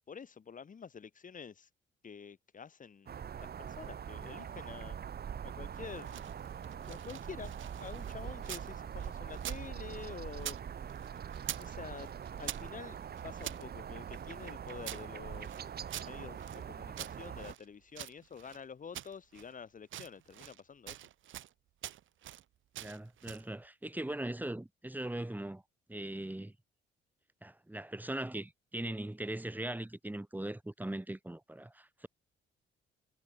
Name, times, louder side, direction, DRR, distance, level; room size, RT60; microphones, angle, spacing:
voice 1, 0.1-1.7 2.0-5.0 5.4-6.2 6.9-7.5 7.8-10.9 11.6-12.1 12.4-13.0 13.2-15.7 16.0-21.0, left 6 dB, 40° left, 2.8 m, -48 dB
sound 1, 3.1-17.5, right 8 dB, 50° right, 2.3 m, -43 dB
sound 2, 5.8-8.7 9.0-10.6 10.9-11.7 12.0-13.6 14.1-16.6 16.9-18.6 18.9-19.5 19.8-20.6 20.9-21.5 21.8-22.4 22.7-23.5, right 12 dB, 75° right, 3.9 m, -45 dB
voice 2, 22.8-25.6 25.9-26.5 27.4-32.1, right 1 dB, 10° right, 3.9 m, -40 dB
cardioid pair, 90°, 20 cm